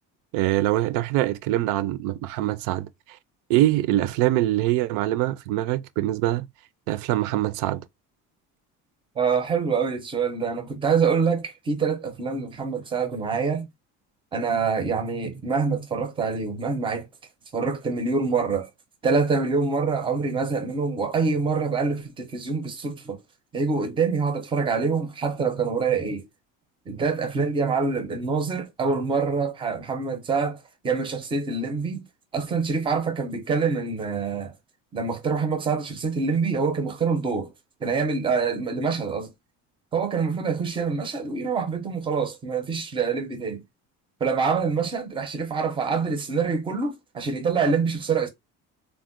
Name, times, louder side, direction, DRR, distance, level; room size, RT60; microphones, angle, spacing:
voice 1, 0.3-2.9 3.5-6.5 6.9-7.8, right 15 dB, 75° right, 0.5 m, -23 dB
voice 2, 9.2-13.7 14.3-17.1 17.5-18.7 19.0-23.2 23.5-26.3 26.9-32.1 32.3-34.5 34.9-37.5 37.8-39.3 39.9-43.6 44.2-48.3, right 5 dB, 15° right, 0.5 m, -25 dB
3.5 x 2.1 x 2.4 m
cardioid pair, 170°, 33 cm